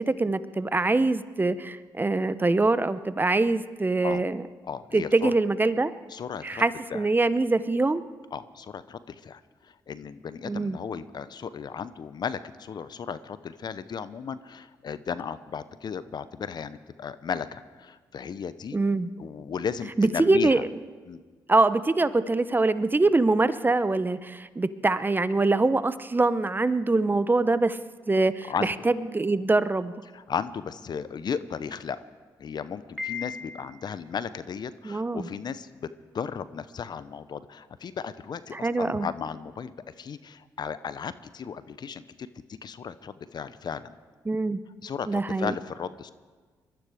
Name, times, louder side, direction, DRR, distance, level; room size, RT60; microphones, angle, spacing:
voice 1, 0.0-4.4 4.9-5.9 6.4-8.0 10.5-10.8 18.7-19.1 20.0-20.6 21.5-27.8 28.1-29.9 34.8-35.3 38.5-39.1 44.3-44.6 45.1-45.5, right 3 dB, 20° right, 14 dB, 0.8 m, -24 dB
voice 2, 4.6-5.3 6.1-6.6 6.9-7.1 8.3-18.8 19.2-20.6 21.1-21.2 28.5-28.7 30.1-32.0 32.4-35.9 36.1-44.0 44.8-46.1, left 6 dB, 55° left, 14 dB, 0.7 m, -35 dB
Piano, 33.0-34.0, left 6 dB, ahead, 2.6 m, -36 dB
21.5 x 13.5 x 4.9 m, 1.4 s
supercardioid pair, 55°, 9 cm